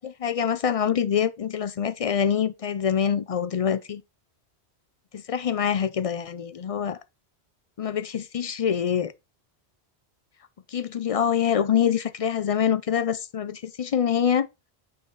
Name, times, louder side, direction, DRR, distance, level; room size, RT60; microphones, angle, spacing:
voice 1, 0.0-4.0 5.1-7.0 7.8-9.1 10.7-14.5, left 8 dB, 50° left, 0.4 m, -25 dB
9.3 x 4.0 x 3.9 m
omnidirectional pair, 1.1 m